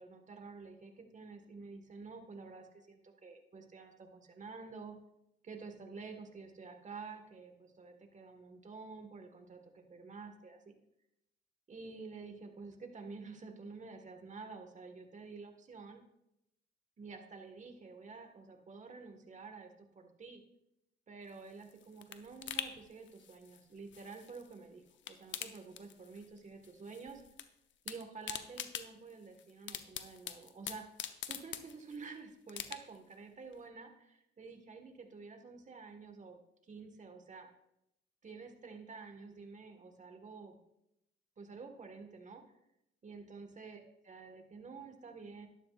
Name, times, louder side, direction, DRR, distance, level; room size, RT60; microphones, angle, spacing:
voice 1, 0.0-5.0 5.4-10.6 11.7-16.0 17.0-20.4 21.1-27.2 27.8-30.9 31.3-36.4 36.7-37.5 38.2-40.6 41.4-42.4 43.0-45.5, right 4 dB, 40° right, 5 dB, 1.6 m, -50 dB
sound 1, 21.3-24.6 24.9-26.4 26.6-27.5 27.7-32.1 32.5-33.1 33.5-33.6, left 10 dB, 70° left, 0.8 m, -44 dB
12.0 x 11.5 x 2.5 m, 0.83 s
cardioid pair, 90°, 20 cm